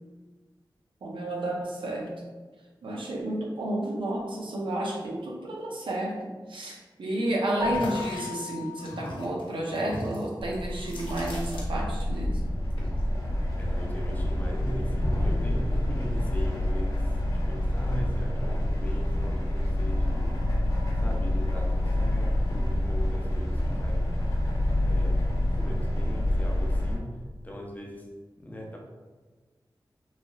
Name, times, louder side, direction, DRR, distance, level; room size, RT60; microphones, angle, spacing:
voice 1, 1.0-2.1 2.8-6.2 6.5-12.4, right 1 dB, 90° right, -2 dB, 0.6 m, -31 dB
Keyboard (musical), 7.6-10.0, left 5 dB, 50° right, 0.7 m, -36 dB
sound 1, 7.7-12.2 12.4-14.1 14.4-15.4, equal, 85° left, 0.7 m, -39 dB
sound 2, 10.4-27.0, left 1 dB, 45° left, 0.9 m, -27 dB
voice 2, 13.6-20.3 20.9-24.2 24.8-27.1 27.4-28.1 28.4-28.8, equal, 20° left, -1 dB, 0.5 m, -39 dB
3.2 x 2.7 x 2.3 m, 1.3 s
wide cardioid pair, 105°, 8 cm